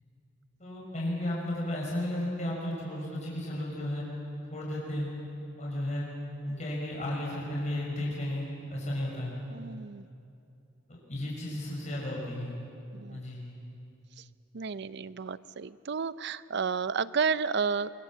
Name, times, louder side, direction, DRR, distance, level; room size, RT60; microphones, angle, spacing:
voice 1, 0.6-4.0 4.5-5.1 5.6-6.1 6.4-9.3 10.9-12.5 13.1-13.4, left 1 dB, 40° left, -5 dB, 6.0 m, -34 dB
voice 2, 9.5-10.1 12.9-13.2 14.2-14.3 14.5-17.9, right 5 dB, 60° right, 16 dB, 0.6 m, -32 dB
24.0 x 23.5 x 7.4 m, 2.7 s
head